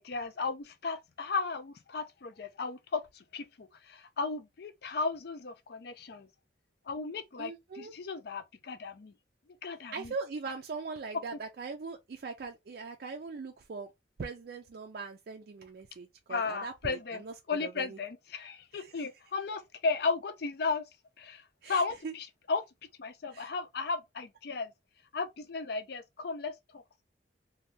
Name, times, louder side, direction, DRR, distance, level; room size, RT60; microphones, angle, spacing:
voice 1, 0.0-6.3 6.9-9.1 9.6-10.1 16.3-17.2 17.5-20.8 21.2-22.6 23.0-24.7 25.1-27.0, left 4 dB, 55° left, 0.4 m, -35 dB
voice 2, 7.4-7.9 9.9-13.9 14.2-17.3 17.6-18.0 18.7-19.0 21.6-22.1 23.3-23.5, right 4 dB, 55° right, 0.4 m, -41 dB
2.6 x 2.2 x 3.1 m
head